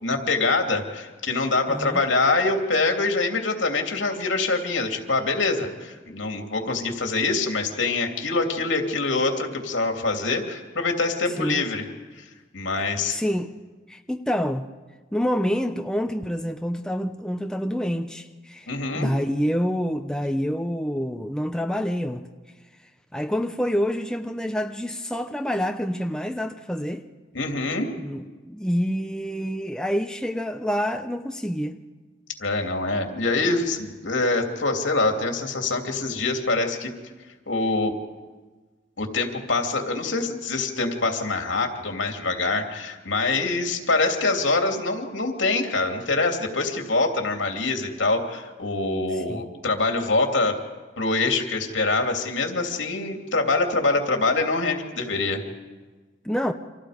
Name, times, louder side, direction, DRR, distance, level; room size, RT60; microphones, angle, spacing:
voice 1, 0.0-11.9 12.1-12.3 12.5-13.2 18.7-19.1 27.3-27.9 32.4-36.9 37.5-38.0 39.0-50.6 51.0-55.4, left 3 dB, 75° left, 3 dB, 2.9 m, -25 dB
voice 2, 1.7-2.0 11.4-11.6 13.1-13.5 13.9-14.7 15.1-22.3 23.1-27.1 28.0-31.8 49.1-49.4 56.2-56.5, equal, 5° left, 6 dB, 0.7 m, -27 dB
29.5 x 26.0 x 5.1 m, 1.4 s
head